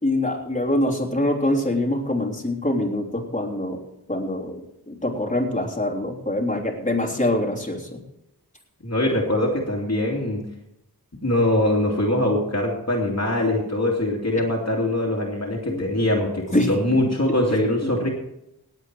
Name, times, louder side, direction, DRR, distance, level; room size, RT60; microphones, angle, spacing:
voice 1, 0.0-3.8 4.1-4.6 4.9-8.0 15.7-15.8 16.5-16.7 17.5-17.9, left 1 dB, 20° left, -2 dB, 3.2 m, -24 dB
voice 2, 8.8-10.4 11.2-18.1, left 1 dB, 45° left, -2 dB, 2.7 m, -22 dB
18.5 x 8.2 x 4.7 m, 0.83 s
wide cardioid pair, 60°, 37 cm